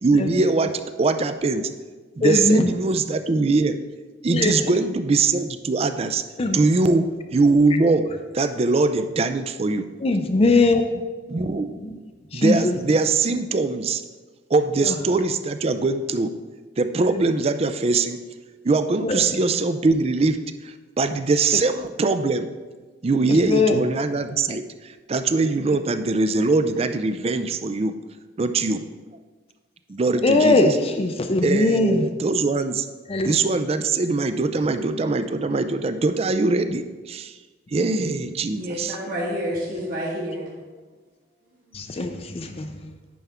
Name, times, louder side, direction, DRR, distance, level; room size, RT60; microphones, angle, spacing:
voice 1, 0.0-0.7 1.0-1.6 2.2-3.8 4.2-6.2 6.5-7.0 7.3-8.0 8.3-9.8 11.3-11.7 12.3-14.0 14.5-16.3 16.8-18.2 18.6-20.4 20.6-22.5 23.0-27.9 28.4-28.8 29.9-30.7 31.4-32.9 33.3-37.3 37.7-39.0, right 3 dB, 35° right, 10 dB, 0.4 m, -22 dB
voice 2, 2.2-2.7 4.3-4.7 6.4-6.6 10.0-10.8 11.6-12.0 12.3-12.8 14.8-14.9 19.0-19.2 23.3-23.8 30.2-32.1 33.1-33.3 41.7-42.7, left 2 dB, 30° left, 6 dB, 0.4 m, -21 dB
voice 3, 38.5-40.5 41.7-41.8 42.4-42.5, equal, 50° right, -6 dB, 1.3 m, -29 dB
9.3 x 5.6 x 3.5 m, 1.3 s
head